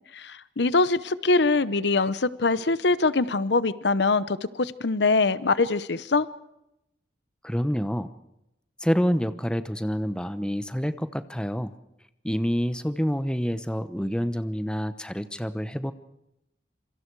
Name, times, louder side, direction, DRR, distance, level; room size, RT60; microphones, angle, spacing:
voice 1, 0.1-6.3, left 3 dB, 70° left, 0.9 m, -23 dB
voice 2, 7.4-8.1 8.8-11.8 12.2-15.9, equal, 5° left, 0.9 m, -27 dB
26.5 x 25.0 x 4.7 m
head